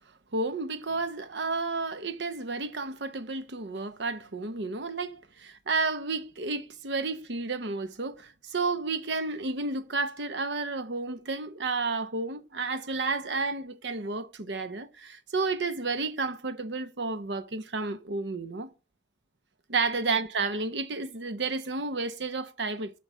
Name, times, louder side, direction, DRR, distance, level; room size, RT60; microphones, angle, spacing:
voice 1, 0.3-18.7 19.7-23.0, right 3 dB, 80° right, 0.8 m, -31 dB
8.4 x 5.7 x 7.4 m
head